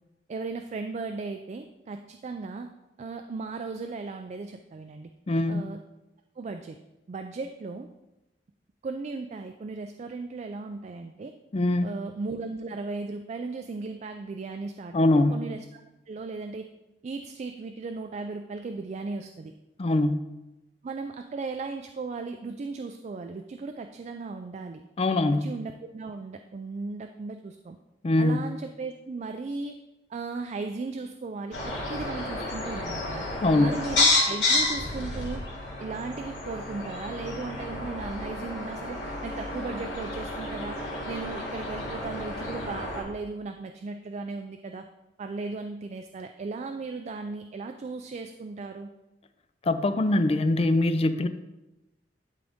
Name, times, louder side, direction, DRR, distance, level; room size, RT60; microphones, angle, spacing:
voice 1, 0.3-2.7 3.0-5.1 5.5-5.8 6.4-6.8 7.1-7.9 8.8-11.3 11.8-16.7 17.0-19.5 20.8-24.8 25.3-27.8 28.2-29.8 30.1-33.3 33.6-35.4 35.8-40.8 41.1-44.9 45.2-48.9, right 3 dB, 40° right, 6 dB, 0.3 m, -36 dB
voice 2, 5.3-5.6 11.5-11.9 14.9-15.4 19.8-20.2 25.0-25.5 28.0-28.5 33.4-33.7 49.7-51.3, left 2 dB, 35° left, 10 dB, 0.4 m, -23 dB
sound 1, 31.5-43.0, left 2 dB, 90° left, 2.1 m, -30 dB
11.0 x 3.9 x 3.6 m, 1.0 s
head